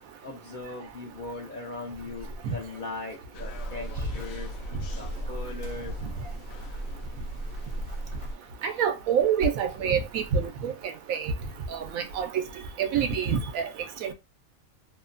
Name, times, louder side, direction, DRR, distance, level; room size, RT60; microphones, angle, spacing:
voice 1, 0.2-4.5 5.0-5.9, left 3 dB, 55° left, 0.6 m, -39 dB
sound 1, 1.9-3.2 3.6-7.1 8.2-10.0 10.5-11.4, left 1 dB, 60° right, 0.9 m, -41 dB
sound 2, 3.3-8.3, right 1 dB, 80° left, 1.0 m, -36 dB
voice 2, 8.6-10.7 11.1-11.3 11.7-12.3 12.8-13.7 14.0-14.1, right 7 dB, 80° right, 1.0 m, -26 dB
3.0 x 2.1 x 2.5 m
omnidirectional pair, 1.4 m